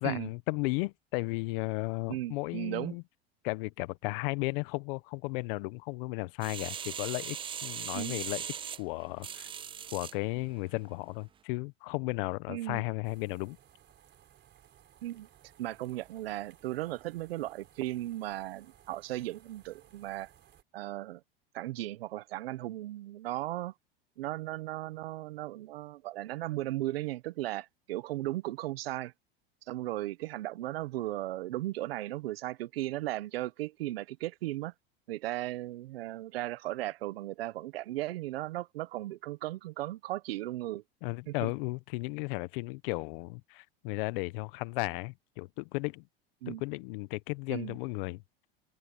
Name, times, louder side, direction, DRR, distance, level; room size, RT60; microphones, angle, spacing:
voice 1, 0.0-3.0 3.4-7.4 7.6-8.4 8.8-9.5 9.9-13.6 41.0-46.1 46.5-48.2, left 25 dB, 65° left, 1.1 m, -34 dB
voice 2, 2.1-3.0 7.9-8.2 12.5-12.8 15.0-15.3 15.6-20.3 20.7-21.2 21.5-23.7 24.2-29.1 29.7-34.7 35.1-40.8 41.3-41.5 46.4-46.6 47.5-47.8, right 16 dB, 80° right, 1.3 m, -36 dB
sound 1, 6.4-10.2 10.7-10.8, right 8 dB, 20° right, 0.4 m, -39 dB
sound 2, 13.0-20.6, right 10 dB, 40° right, 4.1 m, -61 dB
open air
hypercardioid pair, 100°, 29 cm